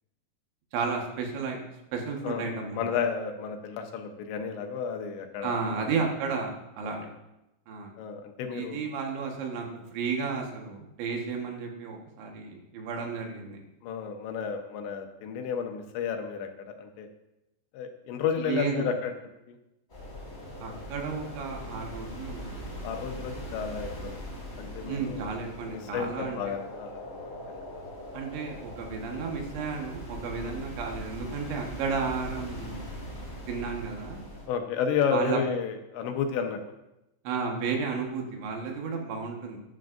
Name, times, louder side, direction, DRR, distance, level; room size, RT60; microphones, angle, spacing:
voice 1, 0.7-1.6 1.9-2.8 5.4-7.1 7.7-7.9 8.5-9.7 9.9-13.6 18.4-18.9 20.6-22.6 24.9-26.4 28.1-32.9 33.5-34.2 35.1-35.4 37.3-39.6, right 5 dB, 80° right, 1 dB, 3.7 m, -33 dB
voice 2, 2.7-5.9 6.8-7.0 8.0-8.8 13.8-17.1 17.7-19.1 19.5-19.6 22.8-24.2 24.6-25.3 25.7-27.8 30.4-30.6 34.5-36.6, left 7 dB, 80° left, 5 dB, 3.2 m, -32 dB
sound 1, 19.9-34.5, equal, 15° left, 4.4 m, -41 dB
14.0 x 10.5 x 2.6 m, 0.92 s
omnidirectional pair, 5.2 m